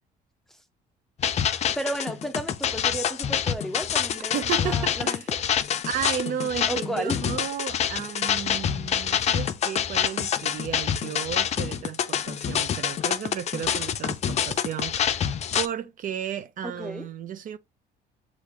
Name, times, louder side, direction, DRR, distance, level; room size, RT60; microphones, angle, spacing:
sound 1, 1.2-15.7, left 9 dB, 40° left, 0.4 m, -26 dB
voice 1, 1.8-5.4 6.7-7.2 16.6-17.1, right 1 dB, ahead, 0.7 m, -33 dB
voice 2, 4.3-5.3 5.8-17.6, right 9 dB, 55° right, 0.5 m, -33 dB
6.5 x 2.5 x 3.0 m
cardioid pair, 110°, 17 cm